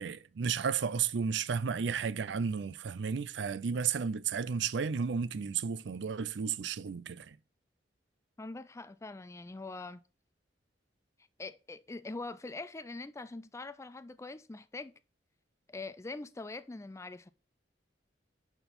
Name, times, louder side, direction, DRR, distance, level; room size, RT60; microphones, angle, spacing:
voice 1, 0.0-7.4, right 6 dB, 70° right, 0.4 m, -33 dB
voice 2, 8.4-10.0 11.4-14.9 15.7-17.3, left 3 dB, 15° left, 0.4 m, -43 dB
6.9 x 6.0 x 5.3 m
head